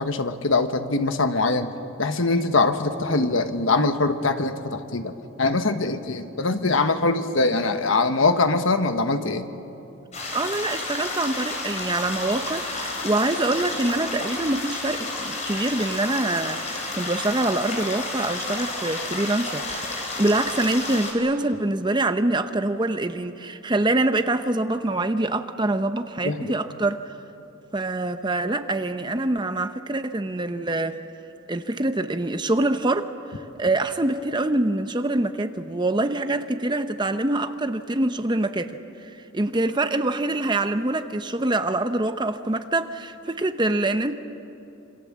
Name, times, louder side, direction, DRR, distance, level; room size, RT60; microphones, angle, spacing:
voice 1, 0.0-1.7 2.0-5.1 5.4-9.5 26.2-26.5, left 3 dB, 65° left, 1.3 m, -23 dB
sound 1, 10.1-21.1, left 2 dB, 30° left, 4.3 m, -31 dB
voice 2, 10.3-19.8 20.2-27.0 27.7-31.0 31.5-33.1 33.6-44.1, right 2 dB, 20° right, 0.7 m, -25 dB
27.0 x 25.5 x 7.5 m
head